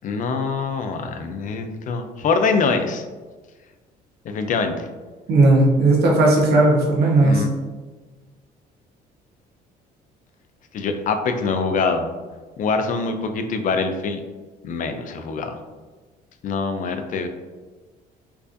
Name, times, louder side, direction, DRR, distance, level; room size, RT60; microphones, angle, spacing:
voice 1, 0.0-3.0 4.2-4.9 7.2-7.5 10.7-12.1 12.6-14.2 14.6-15.6 16.4-17.3, left 4 dB, 50° left, 7 dB, 0.4 m, -24 dB
voice 2, 5.3-7.4, right 2 dB, 70° right, -2 dB, 1.1 m, -16 dB
4.6 x 2.4 x 2.5 m, 1.3 s
cardioid pair, 110°, 17 cm